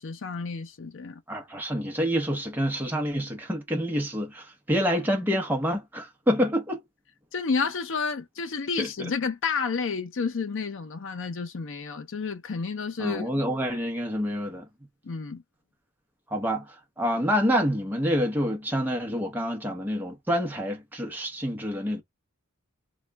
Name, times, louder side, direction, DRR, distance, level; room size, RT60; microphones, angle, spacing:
voice 1, 0.0-1.2 7.3-13.3 15.0-15.4, left 5 dB, 55° left, 0.5 m, -30 dB
voice 2, 1.3-6.8 8.8-9.1 13.0-14.7 16.3-16.7 17.0-22.0, equal, 10° right, 0.8 m, -27 dB
3.0 x 2.3 x 3.4 m
head